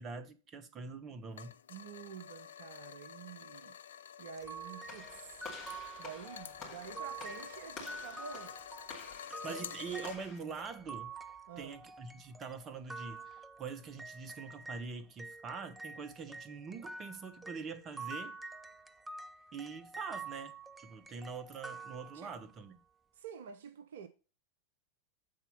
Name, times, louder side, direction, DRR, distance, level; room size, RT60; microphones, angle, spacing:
voice 1, 0.0-1.5 9.3-11.1 11.6-18.4 19.5-22.8, right 5 dB, 25° right, 0.8 m, -44 dB
sound 1, 1.3-10.1, left 9 dB, 65° left, 0.4 m, -49 dB
voice 2, 1.7-3.8 4.2-5.5 6.0-8.6 9.5-9.9 11.5-11.8 19.2-19.3 22.1-22.3 23.2-24.1, right 7 dB, 60° right, 0.6 m, -49 dB
sound 2, 4.4-14.9 15.2-22.6, right 3 dB, 10° right, 0.4 m, -48 dB
Walk footsteps / Slam, 4.9-10.4, left 3 dB, 35° left, 2.6 m, -51 dB
7.7 x 4.1 x 5.4 m
figure-of-eight pair, 90°, 0 cm